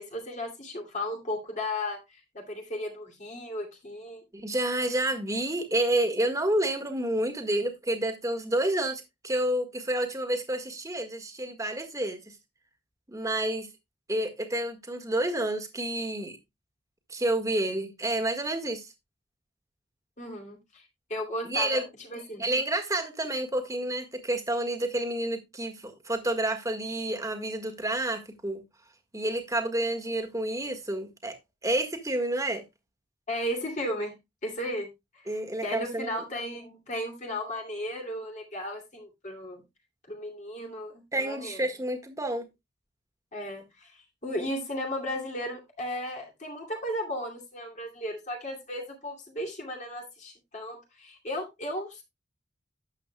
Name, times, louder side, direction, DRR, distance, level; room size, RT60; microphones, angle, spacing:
voice 1, 0.0-4.2 20.2-20.8 21.1-21.8 22.1-22.5 33.3-34.2 34.4-39.6 40.1-41.6 43.3-52.0, left 1 dB, 40° left, 2.5 m, -35 dB
voice 2, 4.3-12.3 13.1-13.7 14.1-16.4 17.1-18.9 21.4-21.8 22.4-28.6 29.1-31.4 31.6-32.6 35.3-36.1 41.1-42.5, right 1 dB, 15° right, 1.6 m, -29 dB
12.5 x 8.2 x 2.2 m
head